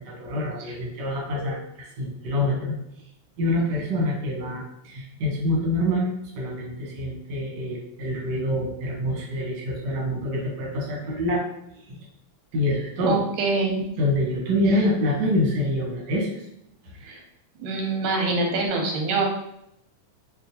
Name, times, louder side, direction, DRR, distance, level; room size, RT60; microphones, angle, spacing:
voice 1, 0.0-2.7 3.4-6.1 6.3-11.4 11.9-12.0 12.5-13.2 14.0-16.4, left 1 dB, 60° right, -3 dB, 1.1 m, -26 dB
voice 2, 13.0-13.8 17.0-17.2 17.6-19.2, right 3 dB, 90° right, 1 dB, 2.2 m, -25 dB
4.9 x 2.2 x 2.8 m, 0.76 s
omnidirectional pair, 3.4 m